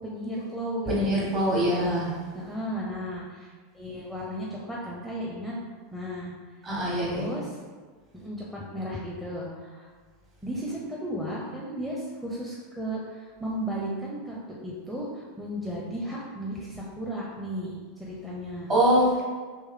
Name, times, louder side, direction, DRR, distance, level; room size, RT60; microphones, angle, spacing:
voice 1, 0.0-1.1 1.5-1.6 2.3-5.6 5.9-6.3 6.6-7.6 8.1-9.9 10.4-18.7, equal, ahead, -5 dB, 0.6 m, -35 dB
voice 2, 0.9-2.1 6.6-7.2 18.7-19.2, equal, 35° right, -5 dB, 1.4 m, -23 dB
3.1 x 3.1 x 3.6 m, 1.5 s
figure-of-eight pair, 85°, 0 cm